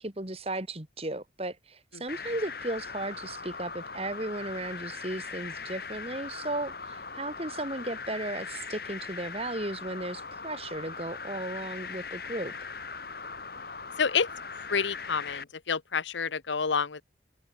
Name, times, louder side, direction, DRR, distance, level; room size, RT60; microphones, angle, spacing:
voice 1, 0.0-12.5, right 1 dB, 35° right, 2.6 m, -35 dB
sound 1, 2.1-15.4, left 5 dB, 55° left, 2.8 m, -40 dB
voice 2, 14.0-14.3 14.7-17.0, left 6 dB, 85° left, 1.0 m, -28 dB
head